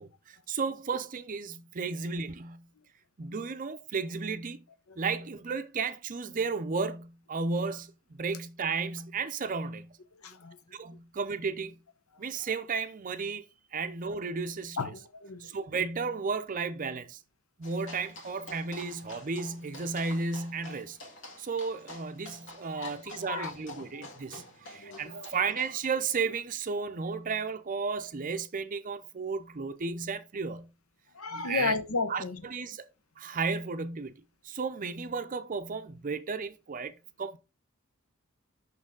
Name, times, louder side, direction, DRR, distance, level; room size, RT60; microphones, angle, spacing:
voice 1, 0.0-2.6 3.2-4.6 5.0-9.9 10.7-11.8 12.2-13.5 13.7-14.9 15.4-17.2 17.6-21.0 21.4-30.7 31.4-31.7 32.1-32.9 33.2-34.1 34.4-36.9 37.2-37.4, right 4 dB, 40° right, 0.5 m, -33 dB
voice 2, 10.2-10.6 13.7-13.8 14.8-15.5 22.8-22.9 23.2-23.5 23.9-24.1 24.3-24.4 24.8-25.3 31.1-32.4, left 4 dB, 75° left, 0.9 m, -33 dB
sound 1, 17.6-25.8, left 1 dB, 60° left, 1.8 m, -48 dB
6.3 x 6.0 x 3.7 m
head